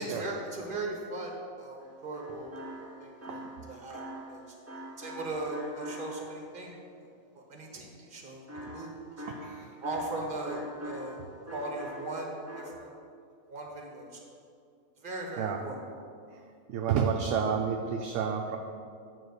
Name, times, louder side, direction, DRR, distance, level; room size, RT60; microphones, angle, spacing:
voice 1, 0.0-2.5 3.0-3.4 3.7-4.0 4.3-4.4 5.0-7.1 7.3-8.9 9.8-11.2 11.5-12.9 13.5-14.3 15.0-15.8, right 2 dB, 40° right, 0 dB, 1.3 m, -38 dB
sound 1, 1.8-6.6 8.5-11.2 11.5-12.7, equal, 15° right, 0.8 m, -43 dB
voice 2, 3.3-3.7 9.2-9.7 15.4-15.6 16.3-16.4 16.7-18.6, right 7 dB, 70° right, 4 dB, 0.8 m, -30 dB
9.0 x 4.0 x 6.7 m, 2.4 s
omnidirectional pair, 1.4 m